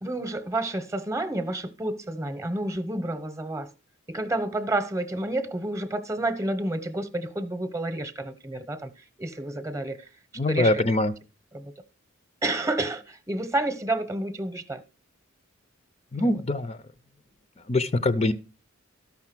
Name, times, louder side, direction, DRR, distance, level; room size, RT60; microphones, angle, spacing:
voice 1, 0.0-3.7 4.1-10.1 10.5-10.8 11.5-11.7 12.4-14.8 16.2-16.4, right 2 dB, 15° right, 0.9 m, -30 dB
voice 2, 10.4-11.1 16.1-16.8 17.7-18.3, left 2 dB, 30° left, 0.5 m, -23 dB
13.5 x 5.8 x 6.0 m
head